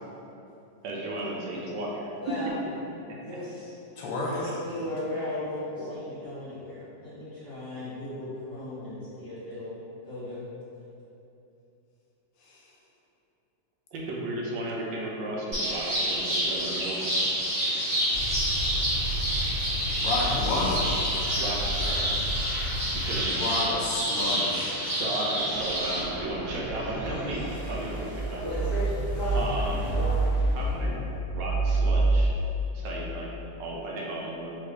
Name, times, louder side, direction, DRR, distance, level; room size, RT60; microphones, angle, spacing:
voice 1, 0.8-2.1 3.1-3.2 4.4-4.5 5.8-5.9 13.9-17.2 21.4-22.3 22.9-23.8 24.9-28.6 29.3-29.9 30.5-31.0 31.3-32.3 32.7-34.6, right 1 dB, 80° right, -3 dB, 1.3 m, -34 dB
voice 2, 2.2-2.5 3.2-3.7 4.2-9.7 10.0-10.4 28.4-28.9 29.2-29.5 29.9-30.2, left 1 dB, 15° left, -13 dB, 1.0 m, -36 dB
voice 3, 4.0-4.3 19.9-20.8 23.4-24.8, left 2 dB, 85° left, -4 dB, 1.4 m, -29 dB
sound 1, 15.5-26.0, equal, 25° right, 1.3 m, -28 dB
sound 2, 18.1-23.2, left 1 dB, 65° left, 1.5 m, -33 dB
sound 3, 25.4-32.3, right 2 dB, ahead, 0.4 m, -28 dB
3.7 x 2.9 x 3.3 m, 2.8 s
omnidirectional pair, 2.0 m